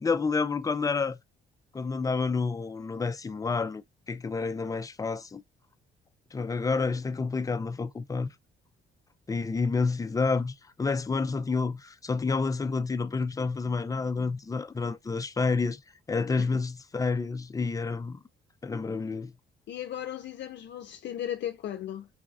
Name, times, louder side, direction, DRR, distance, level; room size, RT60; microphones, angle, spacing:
voice 1, 0.0-1.2 1.7-3.8 4.1-5.4 6.3-8.3 9.3-15.8 16.1-18.2 18.6-19.3, left 4 dB, 15° left, 0.4 m, -29 dB
voice 2, 19.7-22.1, left 10 dB, 65° left, 0.6 m, -36 dB
4.8 x 2.4 x 2.4 m
cardioid pair, 90°, 20 cm